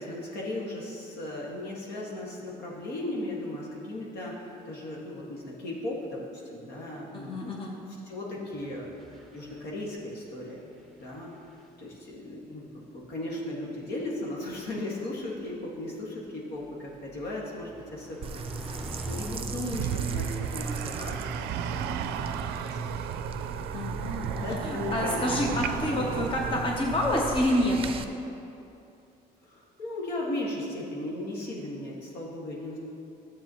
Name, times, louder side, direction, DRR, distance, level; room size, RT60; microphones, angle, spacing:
voice 1, 0.0-7.5 7.9-8.9 9.3-10.6 11.0-11.3 11.8-12.7 12.9-18.4 18.8-21.3 21.6-23.0 23.9-26.2 26.5-26.6 29.4-32.8, left 1 dB, 75° left, -3 dB, 1.9 m, -37 dB
voice 2, 7.1-7.7 23.7-27.9, left 1 dB, 30° left, -1 dB, 1.0 m, -28 dB
sound 1, 8.5-10.5 10.7-12.0 13.0-13.3 15.4-22.5, right 1 dB, ahead, 0.9 m, -46 dB
sound 2, 18.2-28.1, right 4 dB, 35° right, 0.5 m, -37 dB
sound 3, 19.7-27.0, right 9 dB, 80° right, 0.4 m, -34 dB
12.5 x 7.4 x 3.1 m, 2.8 s
cardioid pair, 110°, 17 cm